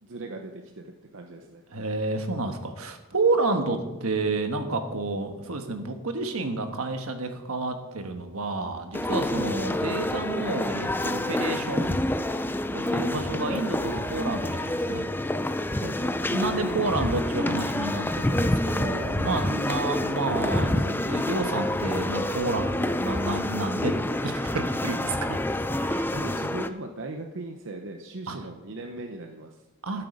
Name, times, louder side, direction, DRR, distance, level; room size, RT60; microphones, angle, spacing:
voice 1, 0.0-1.6 9.3-9.7 13.1-13.3 15.8-16.2 19.8-20.0 25.2-25.4 26.1-29.6, right 2 dB, 60° right, 3 dB, 0.8 m, -39 dB
voice 2, 1.7-12.0 12.7-15.0 16.3-23.9 24.2-25.4 25.8-26.1 28.3-28.4 29.8-30.0, right 3 dB, 80° right, 6 dB, 1.4 m, -30 dB
sound 1, 8.9-26.7, left 1 dB, 10° left, 0.4 m, -28 dB
13.0 x 7.6 x 5.1 m, 1.1 s
head